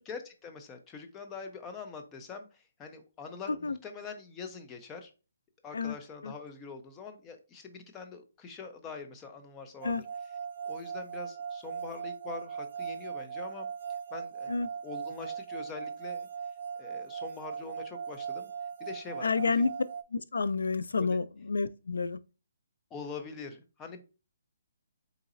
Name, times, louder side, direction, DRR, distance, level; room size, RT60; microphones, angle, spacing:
voice 1, 0.1-5.1 5.6-10.0 10.7-13.7 14.1-16.3 16.8-18.5 18.8-19.6 21.0-21.2 22.9-24.0, left 5 dB, 15° left, 0.5 m, -44 dB
sound 1, 9.8-20.0, right 7 dB, 60° right, 0.4 m, -39 dB
voice 2, 19.2-19.7 20.1-22.2, left 4 dB, 90° left, 0.3 m, -29 dB
4.0 x 3.8 x 2.5 m
hypercardioid pair, 165°, 0 cm